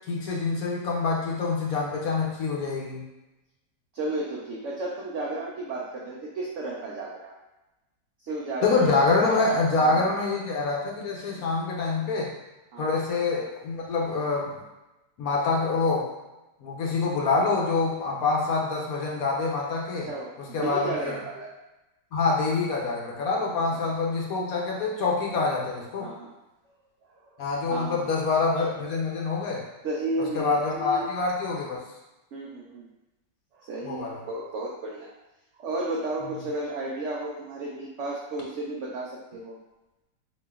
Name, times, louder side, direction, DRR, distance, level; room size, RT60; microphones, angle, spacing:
voice 1, 0.1-3.0 8.6-12.3 12.8-14.6 15.2-16.1 16.6-20.1 20.4-21.2 22.1-26.1 27.4-29.6 30.3-31.8 33.8-34.2, left 3 dB, 65° left, -2 dB, 1.0 m, -26 dB
voice 2, 3.9-7.3 8.2-9.0 9.5-10.2 11.3-11.4 12.7-12.9 20.1-21.5 23.7-23.8 26.0-26.3 27.1-27.3 27.7-28.1 29.8-31.1 32.3-32.9 33.5-35.1 35.6-39.6, right 2 dB, 85° right, -4 dB, 0.6 m, -33 dB
4.2 x 2.8 x 2.2 m, 1.0 s
omnidirectional pair, 1.8 m